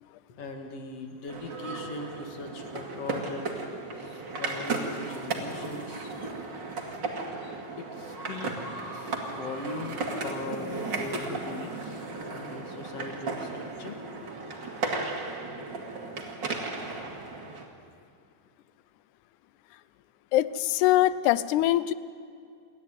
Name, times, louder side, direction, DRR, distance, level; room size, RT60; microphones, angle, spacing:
voice 1, 0.4-6.1 7.8-8.6 8.9-14.0, left 3 dB, 55° left, 4 dB, 2.9 m, -40 dB
sound 1, 1.3-17.7, right 3 dB, 40° right, 2.5 m, -35 dB
voice 2, 20.3-21.9, left 14 dB, 80° left, 16 dB, 2.1 m, -23 dB
29.0 x 11.5 x 9.2 m, 2.3 s
omnidirectional pair, 3.6 m